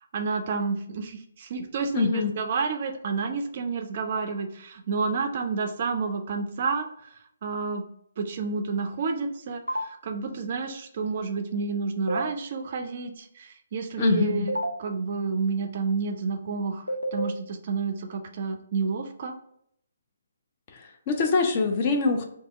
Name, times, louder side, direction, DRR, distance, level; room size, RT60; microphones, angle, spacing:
voice 1, 0.1-6.9 7.4-7.8 8.2-19.3, right 4 dB, 40° right, 6 dB, 0.3 m, -30 dB
voice 2, 1.9-2.3 14.0-14.5 20.7-22.2, left 4 dB, 30° left, 3 dB, 0.4 m, -24 dB
sound 1, 9.7-9.8 12.1-12.2 14.5-14.7 16.9-17.3, right 1 dB, 90° left, 0.4 m, -27 dB
2.7 x 2.3 x 3.0 m, 0.72 s
figure-of-eight pair, 135°, 0 cm